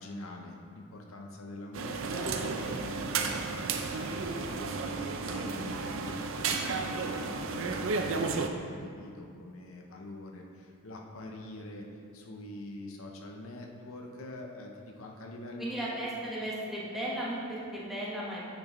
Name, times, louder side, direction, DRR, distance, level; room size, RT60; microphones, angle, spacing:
voice 1, 0.0-3.4 3.8-15.9, left 1 dB, 70° left, 1 dB, 0.7 m, -45 dB
sound 1, 1.7-8.5, right 4 dB, 65° right, 0.5 m, -33 dB
voice 2, 15.6-18.5, right 1 dB, ahead, -8 dB, 1.2 m, -35 dB
8.7 x 6.0 x 3.1 m, 2.3 s
head